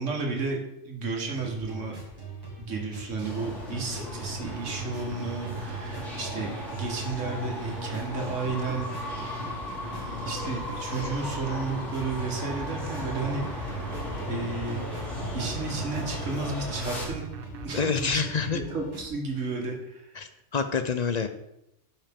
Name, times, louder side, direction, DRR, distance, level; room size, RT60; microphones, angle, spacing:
voice 1, 0.0-1.9 2.6-8.9 9.9-14.0 14.3-14.9 15.3-17.2 17.6-20.1, right 3 dB, 85° right, 1 dB, 1.9 m, -33 dB
sound 1, 1.3-19.1, right 3 dB, 20° right, 1.7 m, -41 dB
sound 2, 3.2-17.1, left 2 dB, 80° left, 2.7 m, -36 dB
sound 3, 4.5-18.2, right 8 dB, 60° right, 0.7 m, -43 dB
voice 2, 17.7-18.6 20.1-21.3, left 5 dB, 50° left, 9 dB, 0.5 m, -27 dB
11.5 x 5.6 x 3.6 m, 0.82 s
omnidirectional pair, 1.2 m